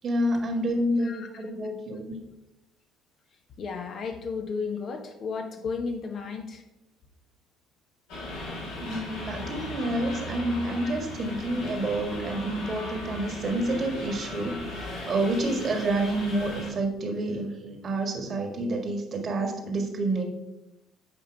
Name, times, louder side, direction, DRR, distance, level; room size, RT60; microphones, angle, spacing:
voice 1, 0.0-2.1 8.8-14.6 15.1-20.2, right 1 dB, 45° right, 4 dB, 1.8 m, -28 dB
voice 2, 1.0-1.7 3.6-6.6 10.8-10.9, left 5 dB, 50° left, 4 dB, 1.1 m, -34 dB
sound 1, 8.1-16.7, left 1 dB, 70° left, 2.6 m, -37 dB
8.4 x 5.1 x 4.8 m, 0.92 s
hypercardioid pair, 55°, 0 cm